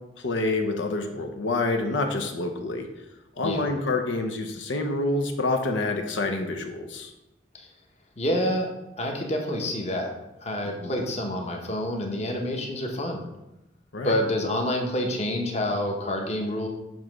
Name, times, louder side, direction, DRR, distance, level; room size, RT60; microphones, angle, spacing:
voice 1, 0.2-2.9 3.4-7.1 10.8-10.9 13.9-14.1, left 2 dB, 80° left, 4 dB, 0.7 m, -27 dB
voice 2, 3.4-3.7 7.5-7.7 8.2-8.7 9.0-10.1 10.4-13.2 14.0-16.7, left 1 dB, 35° left, 1 dB, 1.0 m, -28 dB
7.2 x 3.1 x 6.1 m, 0.94 s
head